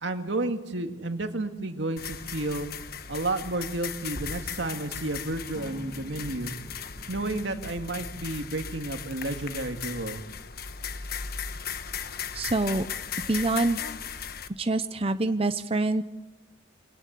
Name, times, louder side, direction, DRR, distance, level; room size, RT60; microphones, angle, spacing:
voice 1, 0.0-2.7 3.1-6.5 7.1-10.2, right 2 dB, 75° right, 6 dB, 2.2 m, -31 dB
sound 1, 2.0-14.5, left 6 dB, 55° left, 1.3 m, -37 dB
sound 2, 5.5-8.3, left 2 dB, 25° left, 3.0 m, -48 dB
voice 2, 12.3-12.9 13.3-13.8 14.6-16.0, right 2 dB, 30° right, 10 dB, 0.7 m, -25 dB
24.0 x 18.0 x 8.3 m, 1.1 s
head